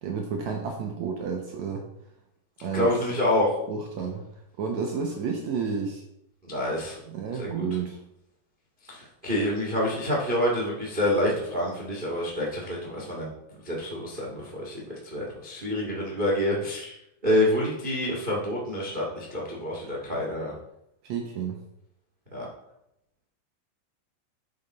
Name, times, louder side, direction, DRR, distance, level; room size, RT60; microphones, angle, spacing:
voice 1, 0.0-1.9 2.6-2.9 3.7-4.2 4.6-6.0 7.1-8.0 21.0-21.6, right 6 dB, 80° right, 2 dB, 1.6 m, -31 dB
voice 2, 2.7-3.5 6.5-7.0 7.4-7.7 8.9-13.3 13.6-17.0 17.2-20.5 22.3-22.5, left 1 dB, 60° right, -2 dB, 0.5 m, -27 dB
9.2 x 6.8 x 4.3 m, 0.80 s
omnidirectional pair, 4.6 m